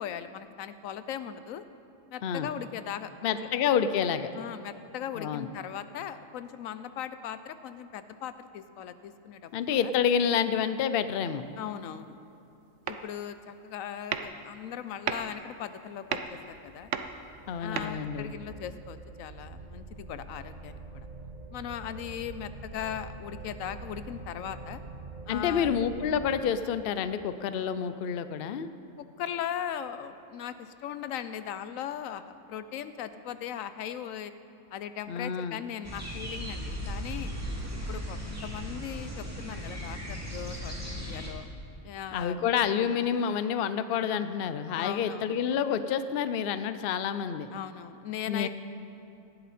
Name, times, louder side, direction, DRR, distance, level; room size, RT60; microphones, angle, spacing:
voice 1, 0.0-1.6 2.1-3.5 4.4-9.9 11.6-12.2 12.9-16.9 17.6-21.1 21.5-24.8 25.3-25.7 29.0-34.3 34.7-37.3 37.9-41.4 41.8-42.4 44.8-45.4 47.5-48.5, left 9 dB, 85° left, 12 dB, 1.0 m, -39 dB
voice 2, 3.2-4.3 5.2-5.5 9.5-11.5 17.5-18.3 25.3-28.7 35.1-35.6 42.1-47.5 48.3-48.5, left 8 dB, 55° left, 12 dB, 0.7 m, -28 dB
sound 1, 9.8-10.2 12.8-13.3 13.6-13.8 14.1-18.0, right 7 dB, 70° right, 1.0 m, -36 dB
sound 2, 16.2-26.4, right 3 dB, 40° right, 0.8 m, -45 dB
sound 3, 35.8-41.3, equal, 10° right, 2.4 m, -37 dB
18.0 x 11.5 x 4.3 m, 2.8 s
omnidirectional pair, 1.4 m